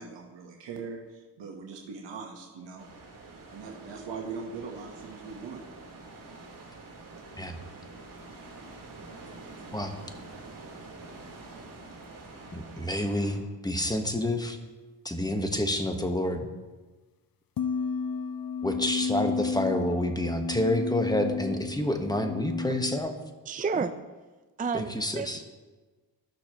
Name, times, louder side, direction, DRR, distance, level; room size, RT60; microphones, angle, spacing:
voice 1, 0.0-2.9 3.5-5.7, right 5 dB, 75° right, 0 dB, 1.3 m, -40 dB
sound 1, 2.8-13.4, right 3 dB, 50° right, 2.3 m, -46 dB
voice 2, 12.5-14.6 15.0-16.5 18.6-23.1 24.7-25.4, left 1 dB, 10° left, 5 dB, 1.3 m, -28 dB
sound 2, 17.6-23.0, left 5 dB, 55° left, 0.6 m, -32 dB
voice 3, 23.5-23.9 24.6-25.5, right 5 dB, 20° right, 9 dB, 0.5 m, -31 dB
14.5 x 6.1 x 3.0 m, 1.2 s
cardioid pair, 55°, 43 cm